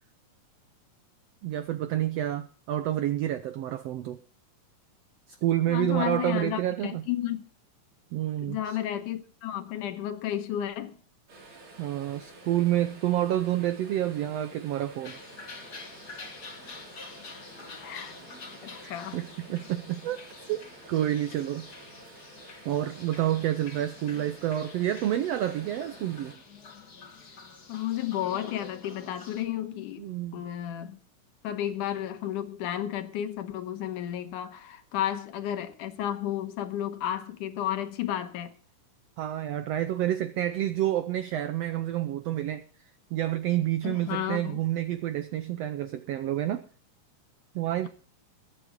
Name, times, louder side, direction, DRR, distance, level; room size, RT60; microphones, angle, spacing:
voice 1, 1.4-4.2 5.4-7.0 8.1-8.6 11.8-15.2 18.8-20.2 20.5-21.7 22.6-26.3 30.0-30.4 39.2-42.6 43.1-46.7 47.5-47.9, right 12 dB, 85° right, 1.4 m, -29 dB
voice 2, 5.7-7.5 8.4-11.0 17.8-18.1 18.6-19.2 27.7-30.1 30.3-31.0 31.4-38.5 43.8-44.6, left 11 dB, 75° left, 2.5 m, -32 dB
sound 1, 11.3-26.4, right 2 dB, 65° right, 5.4 m, -50 dB
sound 2, 15.0-29.4, left 4 dB, 35° left, 1.8 m, -47 dB
21.5 x 9.2 x 3.8 m
omnidirectional pair, 3.8 m